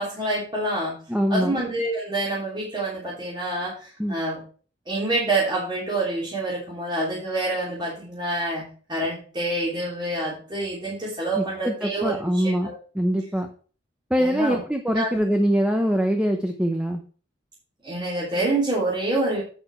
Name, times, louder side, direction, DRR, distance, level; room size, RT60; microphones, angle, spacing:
voice 1, 0.0-1.0 1.3-4.4 4.9-12.1 12.6-12.7 14.2-14.6 14.9-15.2 17.8-19.4, right 2 dB, 25° right, -6 dB, 3.2 m, -27 dB
voice 2, 1.1-1.6 4.0-4.2 11.3-13.5 14.1-17.0, equal, 5° right, 3 dB, 0.9 m, -23 dB
9.0 x 6.7 x 4.5 m, 0.39 s
head